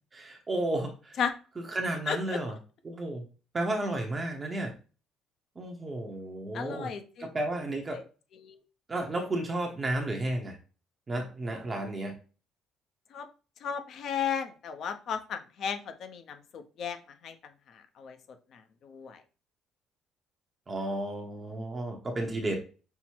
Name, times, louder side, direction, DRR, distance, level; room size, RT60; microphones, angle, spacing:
voice 1, 0.1-1.2 1.6-2.6 2.8-3.2 3.5-4.7 5.6-6.9 7.2-8.0 8.9-10.6 11.1-12.1 20.7-22.6, right 1 dB, 20° right, 2 dB, 0.8 m, -32 dB
voice 2, 2.1-2.4 6.5-7.3 8.4-8.6 13.1-13.3 13.6-17.0 17.2-17.3 18.0-18.2 18.8-19.2, left 7 dB, 45° left, 7 dB, 0.7 m, -34 dB
5.6 x 2.1 x 4.5 m, 0.35 s
cardioid pair, 170°, 0 cm